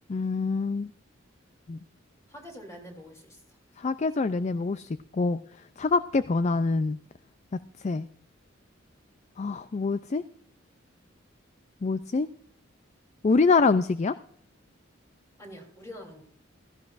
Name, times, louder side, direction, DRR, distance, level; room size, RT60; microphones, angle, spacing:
voice 1, 0.1-0.9 1.7-1.8 3.8-5.4 5.8-7.0 7.8-8.1 9.4-10.2 11.8-12.3 13.2-14.2, left 4 dB, 35° left, 13 dB, 0.4 m, -25 dB
voice 2, 2.3-3.4 15.4-16.2, equal, 15° left, 1 dB, 3.3 m, -45 dB
16.0 x 15.0 x 2.5 m, 0.63 s
head